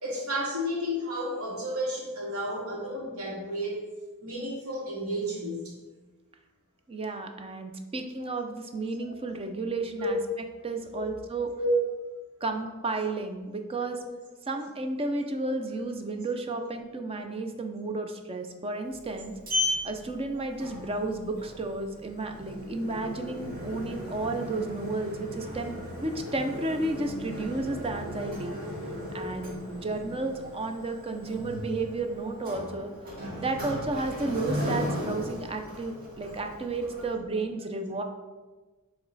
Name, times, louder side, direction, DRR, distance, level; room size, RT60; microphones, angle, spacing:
voice 1, 0.0-3.8 4.2-5.7 9.0-9.1 10.0-10.1 10.9-11.0 11.6-11.8 14.0-14.1, equal, 75° right, -4 dB, 1.9 m, -32 dB
voice 2, 6.9-10.2 10.6-11.5 12.4-14.0 14.5-19.3 19.8-28.5 29.1-32.9 33.4-38.0, right 2 dB, 25° right, 5 dB, 0.5 m, -32 dB
Sliding door, 18.9-37.1, left 1 dB, 40° right, 1.5 m, -36 dB
8.0 x 3.1 x 4.0 m, 1.3 s
head